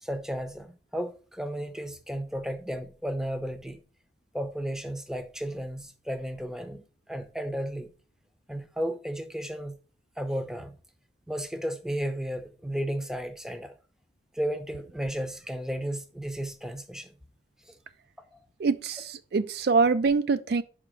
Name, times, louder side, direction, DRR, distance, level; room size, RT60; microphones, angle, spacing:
voice 1, 0.0-3.8 4.3-7.9 8.5-9.7 10.2-10.8 11.3-13.7 14.3-17.1 17.7-17.8 18.3-18.4, equal, 5° right, 0.6 m, -34 dB
voice 2, 18.6-20.6, right 4 dB, 55° right, 0.4 m, -24 dB
5.7 x 5.0 x 5.7 m
head